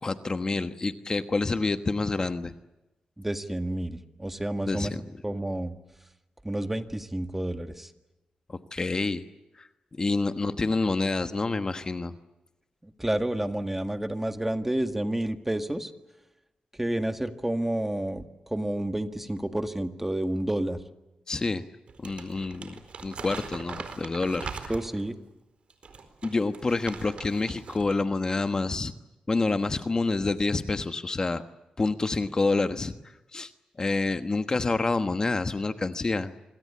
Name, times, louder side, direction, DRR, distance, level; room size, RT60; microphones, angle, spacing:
voice 1, 0.0-2.5 4.7-5.0 8.5-9.2 9.6-9.7 10.0-12.1 21.3-21.6 22.0-22.7 23.0-24.7 26.2-28.9 29.3-31.4 31.8-32.9 33.3-33.5 33.8-36.3, left 3 dB, 30° left, 9 dB, 1.2 m, -28 dB
voice 2, 3.2-4.9 5.2-5.7 6.4-7.9 12.8-15.9 16.8-18.2 18.5-20.8 24.7-25.1, right 1 dB, 10° right, 8 dB, 1.8 m, -30 dB
Crumpling crinkling, 21.9-25.1 25.7-28.0 28.3-28.5, right 5 dB, 60° right, 4.4 m, -41 dB
26.5 x 22.5 x 8.6 m, 0.98 s
cardioid pair, 95°, 2 cm